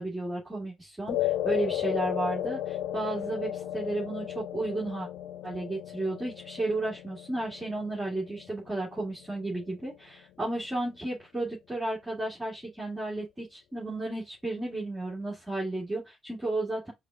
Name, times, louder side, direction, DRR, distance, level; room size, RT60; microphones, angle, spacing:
voice 1, 0.0-5.1 5.4-16.9, right 2 dB, 15° right, 2.2 m, -33 dB
sound 1, 1.1-9.6, left 13 dB, 60° left, 0.4 m, -34 dB
4.9 x 2.4 x 3.7 m
figure-of-eight pair, 45°, 0 cm